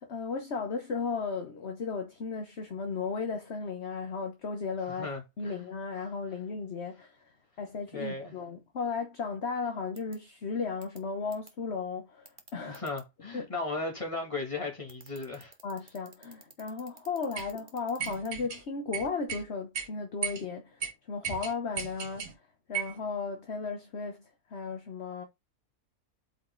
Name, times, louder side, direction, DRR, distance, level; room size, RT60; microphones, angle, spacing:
voice 1, 0.0-5.1 5.4-7.3 7.6-12.8 13.3-13.5 15.6-25.2, left 4 dB, 45° left, 1.3 m, -35 dB
voice 2, 4.9-5.6 7.9-8.3 12.7-15.5, left 3 dB, 20° left, 2.4 m, -36 dB
sound 1, 10.0-10.2 10.8-11.0 11.3-11.5 12.3-13.0 14.9-18.3, right 4 dB, 35° right, 1.5 m, -51 dB
sound 2, 17.4-17.5 18.0-18.6 18.9-19.4 19.7-19.9 20.2-20.4 20.8-20.9 21.2-22.3 22.7-23.0, right 7 dB, 55° right, 1.8 m, -35 dB
8.4 x 5.1 x 3.9 m
omnidirectional pair, 1.7 m